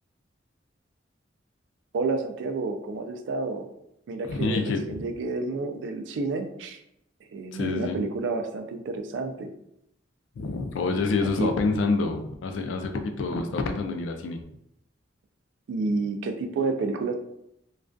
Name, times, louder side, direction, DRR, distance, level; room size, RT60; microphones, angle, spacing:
voice 1, 1.9-3.7 4.1-6.8 7.3-9.5 11.4-11.5 15.7-17.1, right 3 dB, 75° right, 6 dB, 0.3 m, -30 dB
voice 2, 4.3-5.0 7.5-8.0 10.4-14.4, left 3 dB, 85° left, 6 dB, 0.3 m, -27 dB
2.3 x 2.2 x 2.4 m, 0.80 s
head